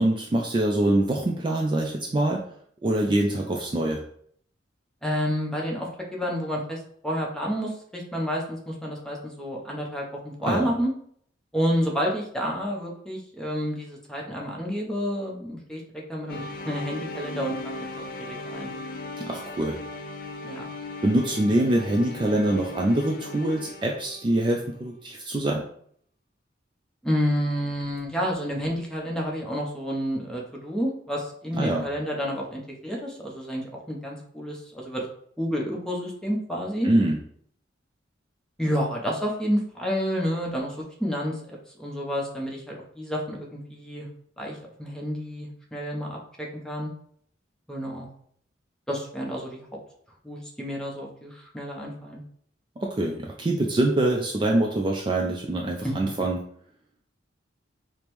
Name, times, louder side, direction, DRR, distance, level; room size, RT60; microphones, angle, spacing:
voice 1, 0.0-2.5 2.8-4.0 10.4-10.7 19.2-19.8 21.0-25.7 31.5-31.9 36.8-37.2 52.8-56.4, right 1 dB, 25° right, 0 dB, 0.3 m, -24 dB
voice 2, 5.0-10.9 11.5-15.8 16.1-18.7 20.4-20.7 27.0-35.1 35.4-36.9 38.6-44.1 44.4-46.9 47.7-48.1 48.9-49.7 50.2-52.2 55.8-55.9, equal, 5° left, -2 dB, 0.7 m, -30 dB
sound 1, 16.3-24.6, left 2 dB, 50° left, 0.4 m, -38 dB
5.0 x 2.0 x 3.0 m, 0.63 s
head